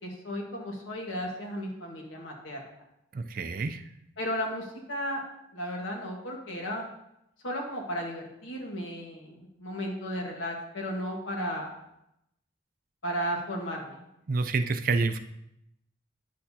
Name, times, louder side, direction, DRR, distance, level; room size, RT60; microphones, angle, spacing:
voice 1, 0.0-2.6 4.2-5.2 5.5-6.8 7.4-11.7 13.0-14.1, equal, 90° left, 0 dB, 1.6 m, -34 dB
voice 2, 3.1-3.8 14.3-15.2, right 4 dB, 45° right, 9 dB, 0.4 m, -28 dB
8.9 x 6.5 x 2.8 m, 0.81 s
head